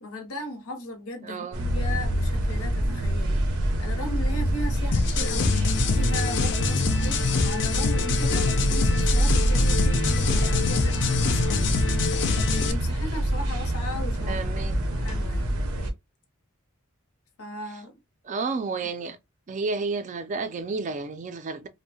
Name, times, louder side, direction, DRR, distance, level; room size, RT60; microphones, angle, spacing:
voice 1, 0.0-3.4 3.8-5.5 6.0-11.8 12.5-14.6 14.9-15.5 17.4-18.0, left 1 dB, 85° left, 0.7 m, -37 dB
voice 2, 1.2-1.7 14.3-14.8 18.2-19.2 19.5-21.7, right 4 dB, 35° right, 0.4 m, -31 dB
sound 1, 1.5-15.9, right 1 dB, 85° right, 0.6 m, -26 dB
sound 2, 4.9-12.7, left 5 dB, 55° left, 0.4 m, -25 dB
2.6 x 2.1 x 2.7 m
head